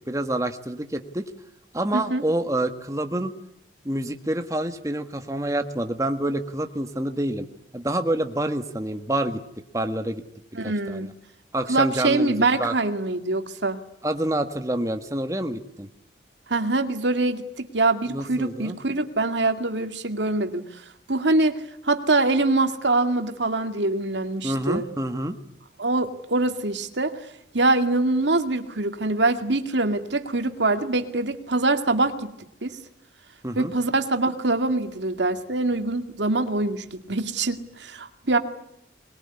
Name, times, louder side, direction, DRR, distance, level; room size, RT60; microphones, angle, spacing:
voice 1, 0.1-1.3 1.7-3.3 3.8-7.5 7.7-9.4 9.7-10.2 10.6-11.1 11.5-12.7 14.0-15.9 18.1-18.8 24.4-25.4 33.4-33.7, right 1 dB, 20° right, 6 dB, 1.5 m, -27 dB
voice 2, 10.5-11.1 11.7-13.8 16.5-20.6 21.1-24.9 25.8-27.1 27.5-32.3 32.6-32.8 33.6-38.4, right 2 dB, 80° right, 7 dB, 2.3 m, -24 dB
23.5 x 21.5 x 9.8 m, 0.79 s
head